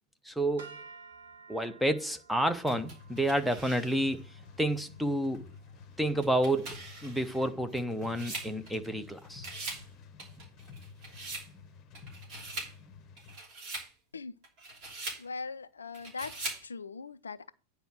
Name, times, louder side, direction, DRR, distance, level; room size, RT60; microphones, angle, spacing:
voice 1, 0.2-0.8 1.5-4.2 4.6-5.4 6.0-6.8 7.0-9.5, right 1 dB, ahead, 0.8 m, -30 dB
sound 1, 0.6-6.9, right 4 dB, 65° right, 1.6 m, -55 dB
sound 2, 2.7-13.4, left 5 dB, 35° left, 1.0 m, -51 dB
sound 3, 2.7-4.2 4.8-4.9 6.1-9.1 9.3-9.9 10.2-11.5 11.9-12.7 13.2-13.9 14.4-15.2 15.9-16.7, right 2 dB, 40° right, 3.0 m, -42 dB
voice 2, 15.2-17.5, left 4 dB, 75° left, 0.4 m, -41 dB
9.3 x 4.7 x 6.2 m
figure-of-eight pair, 90°, 0 cm